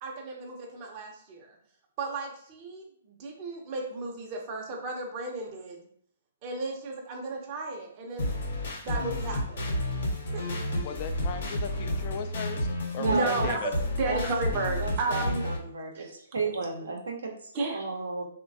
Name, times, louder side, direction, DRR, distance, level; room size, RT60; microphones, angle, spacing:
voice 1, 0.0-1.6 2.0-5.8 6.4-8.3 8.8-9.7 10.3-10.4 13.1-13.6 14.0-15.5 15.9-16.1 17.5-17.8, right 3 dB, 35° right, 0 dB, 0.6 m, -33 dB
sound 1, 8.2-15.6, left 1 dB, 65° left, 0.9 m, -31 dB
voice 2, 10.8-13.7, left 6 dB, 40° left, 6 dB, 0.3 m, -37 dB
voice 3, 13.0-13.5 14.1-14.2 14.8-18.3, right 4 dB, 80° right, 1 dB, 0.7 m, -33 dB
3.0 x 2.2 x 2.6 m, 0.63 s
hypercardioid pair, 135°, 0 cm